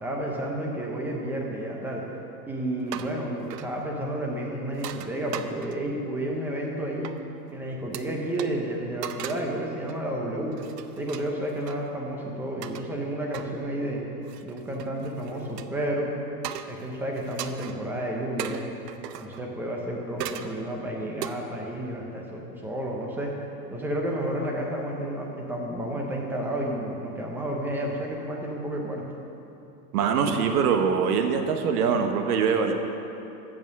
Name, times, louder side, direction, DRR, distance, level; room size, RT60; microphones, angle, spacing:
voice 1, 0.0-2.0 2.5-7.1 7.5-10.5 11.0-14.0 14.4-16.2 16.7-18.7 19.1-23.3 23.7-29.0, right 1 dB, 5° right, -1 dB, 0.5 m, -31 dB
sound 1, 2.8-3.2 3.5-3.7 4.7-6.0 7.0-7.2 7.9-8.0 8.4-8.5 9.0-9.5 9.9-10.1 10.5-11.8 12.6-12.9 13.3-13.5 14.2-15.7 16.4-16.8 17.2-17.8 18.4-19.4 20.2-20.6 21.2-21.4, right 10 dB, 85° right, 0.7 m, -37 dB
voice 2, 29.9-32.7, right 6 dB, 70° right, 5 dB, 1.1 m, -23 dB
8.1 x 7.2 x 6.4 m, 2.9 s
supercardioid pair, 150°, 47 cm